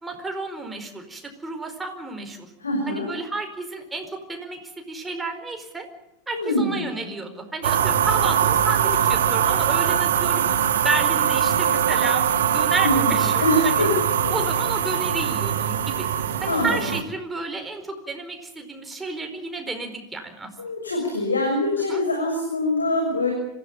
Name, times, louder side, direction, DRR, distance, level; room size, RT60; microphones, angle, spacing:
voice 1, 0.0-2.5 2.9-5.9 6.3-10.5 10.8-12.2 12.5-13.9 14.3-16.1 16.4-20.5 21.8-22.0, right 3 dB, 10° right, 4 dB, 4.6 m, -31 dB
voice 2, 2.6-3.1 6.3-6.9 12.8-13.9 14.2-14.3 16.5-16.8 20.6-23.3, left 1 dB, 75° left, 1 dB, 6.5 m, -24 dB
sound 1, 7.6-17.0, right 9 dB, 60° right, 1.7 m, -22 dB
26.0 x 16.5 x 8.8 m, 0.90 s
figure-of-eight pair, 90°, 0 cm